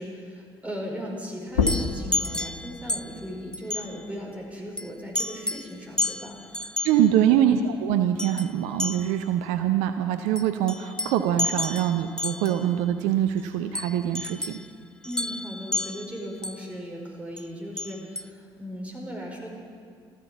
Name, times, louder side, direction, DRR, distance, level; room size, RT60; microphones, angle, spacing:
voice 1, 0.0-7.3 15.0-19.5, equal, 10° right, -1 dB, 4.8 m, -37 dB
sound 1, 1.5-6.7 7.1-8.9, left 5 dB, 80° left, 1.0 m, -33 dB
sound 2, 1.6-3.2 3.5-4.0 4.8-4.9 5.1-5.7 6.0-7.0 8.2-8.5 8.8-9.2 10.4-12.7 13.7-14.7 15.0-16.6 17.4-17.5 17.8-18.2, left 2 dB, 5° left, 0.5 m, -31 dB
voice 2, 6.8-14.6, right 10 dB, 65° right, 8 dB, 0.6 m, -24 dB
14.5 x 14.0 x 7.1 m, 2.1 s
figure-of-eight pair, 50°, 13 cm